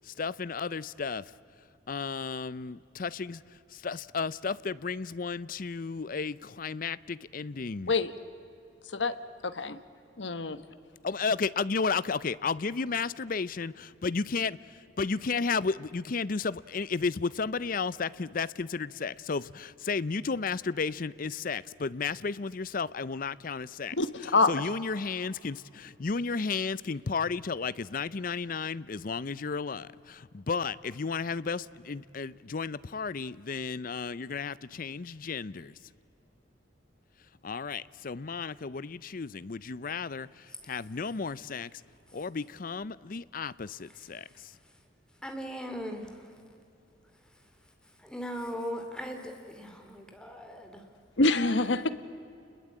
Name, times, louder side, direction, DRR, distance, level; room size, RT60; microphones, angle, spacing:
voice 1, 0.0-1.3 1.9-3.4 3.7-7.9 11.0-14.6 15.0-24.0 24.2-35.7 37.4-41.7 42.1-44.5, left 4 dB, 45° left, 0.5 m, -33 dB
voice 2, 9.4-9.8 10.2-10.6 24.0-24.5 51.2-51.9, left 3 dB, 75° left, 1.2 m, -26 dB
voice 3, 45.2-46.1 48.0-50.8, equal, 5° left, 2.6 m, -38 dB
29.5 x 21.0 x 8.6 m
head